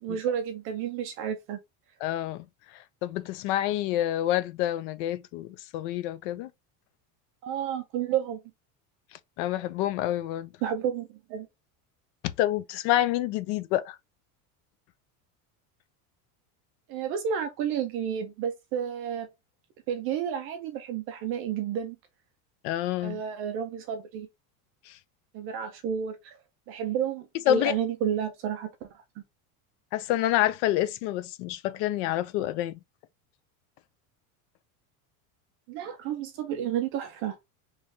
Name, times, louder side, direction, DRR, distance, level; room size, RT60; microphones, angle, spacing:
voice 1, 0.0-1.6 7.4-8.4 10.6-11.5 16.9-19.3 19.9-22.0 23.0-24.3 25.3-26.3 26.7-28.7 35.7-37.4, right 8 dB, 30° right, 0.4 m, -31 dB
voice 2, 2.0-2.4 3.0-6.5 9.4-10.5 12.4-14.0 22.6-23.2 24.9-25.0 27.5-27.8 29.9-32.8, left 14 dB, 55° left, 0.5 m, -28 dB
3.5 x 3.1 x 2.6 m
cardioid pair, 165°, 44 cm